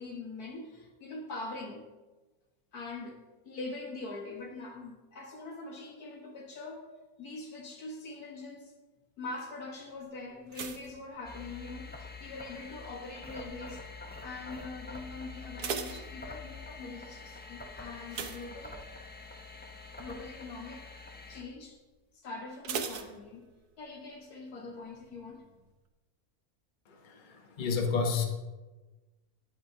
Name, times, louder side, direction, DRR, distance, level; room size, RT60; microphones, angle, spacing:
voice 1, 0.0-1.8 2.7-6.9 7.2-8.7 9.2-13.8 14.2-18.8 20.0-20.9 21.3-21.8 22.1-23.5 23.8-25.6, left 3 dB, 75° left, 1 dB, 2.0 m, -43 dB
sound 1, 10.5-12.0 12.2-12.8 13.4-13.7 14.0-14.1 14.5-14.6 15.3-16.8 18.1-19.2 19.6-19.8 20.2-20.3 22.6-23.9 24.1-24.2, right 6 dB, 85° right, 1.3 m, -39 dB
sound 2, 11.2-21.4, left 3 dB, 10° left, 0.6 m, -46 dB
voice 2, 27.0-28.2, left 5 dB, 35° left, 3 dB, 1.1 m, -30 dB
11.5 x 10.5 x 2.8 m, 1.2 s
omnidirectional pair, 1.6 m